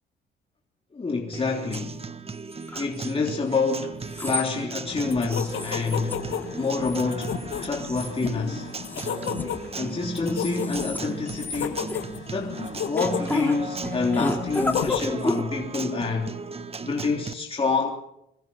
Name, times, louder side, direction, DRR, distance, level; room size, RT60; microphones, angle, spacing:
voice 1, 0.9-2.1 2.8-8.7 9.7-11.9 12.3-16.4 16.8-17.9, left 4 dB, 30° left, 3.5 m, -28 dB
Acoustic guitar, 1.3-17.3, right 5 dB, 30° right, 1.3 m, -37 dB
sound 1, 1.7-1.8 2.5-3.1 4.0-4.5 4.9-5.0 5.4-6.2 6.4-7.1 7.4-8.3 8.8-9.9 10.3-11.0 11.3-12.0 13.0-13.6 13.8-15.4, left 1 dB, 10° left, 2.9 m, -31 dB
sound 2, 4.9-15.0, left 8 dB, 75° left, 2.2 m, -33 dB
26.5 x 22.0 x 5.6 m
cardioid pair, 90°, 20 cm